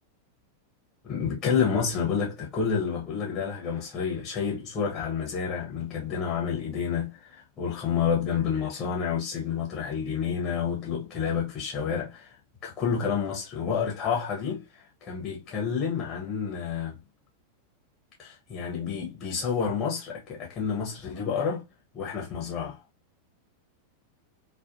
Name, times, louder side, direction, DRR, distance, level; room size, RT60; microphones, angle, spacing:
voice 1, 1.0-12.4 12.6-17.0 18.2-21.7 21.9-22.8, left 6 dB, 25° left, 1.0 m, -29 dB
2.5 x 2.4 x 2.6 m
figure-of-eight pair, 90°, 0 cm